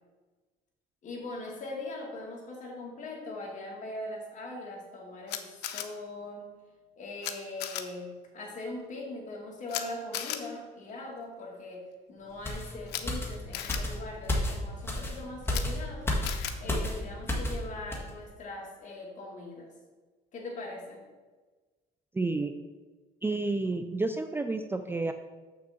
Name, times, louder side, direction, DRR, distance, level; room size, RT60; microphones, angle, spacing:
voice 1, 1.0-6.5 7.0-16.2 16.6-19.7 20.3-21.0, left 2 dB, 45° left, -1 dB, 2.3 m, -41 dB
Camera, 5.3-5.8 7.2-7.3 7.6-7.8 9.7-9.8 10.1-10.4 12.9-13.0 13.5-13.8 15.5-15.6 16.2-16.5, left 11 dB, 80° left, 0.7 m, -34 dB
sound 1, 12.4-17.6 17.9-18.1, left 1 dB, 15° left, 1.5 m, -32 dB
voice 2, 22.1-22.6 23.2-25.1, right 3 dB, 15° right, 7 dB, 0.4 m, -30 dB
7.0 x 6.1 x 4.3 m, 1.3 s
cardioid pair, 110°, 17 cm